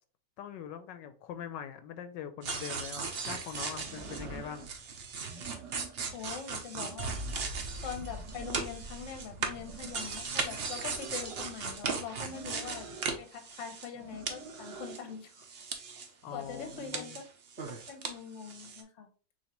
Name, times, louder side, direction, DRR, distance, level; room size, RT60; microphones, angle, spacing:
voice 1, 0.4-4.7 12.9-13.0 16.2-17.2, left 8 dB, 85° left, 1.3 m, -43 dB
sound 1, 2.4-14.0 14.3-16.1 16.4-18.1 18.4-18.8, right 4 dB, 50° right, 0.7 m, -38 dB
sound 2, 2.4-2.5 3.8-4.7 5.2-6.2 6.6-7.6 7.9-8.9 9.4-11.5 12.3-13.1 13.9-15.0 16.2-16.9, right 6 dB, 70° right, 1.8 m, -49 dB
voice 2, 6.1-7.1 7.8-12.9 13.2-15.5 16.3-17.2 17.7-19.1, left 7 dB, 50° left, 1.1 m, -43 dB
6.4 x 2.8 x 3.0 m
omnidirectional pair, 1.9 m